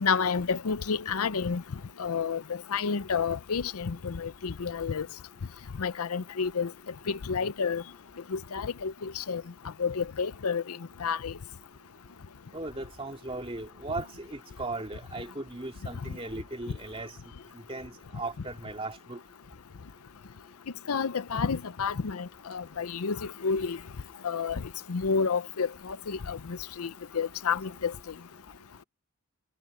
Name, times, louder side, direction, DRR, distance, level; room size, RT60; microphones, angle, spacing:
voice 1, 0.0-1.6 2.0-5.1 5.8-6.7 7.1-7.8 8.3-9.4 9.8-11.3 20.9-23.8 24.2-24.6 24.9-27.9, left 5 dB, 80° left, 0.6 m, -30 dB
voice 2, 12.5-17.2 17.5-19.2, right 2 dB, 25° right, 2.8 m, -37 dB
head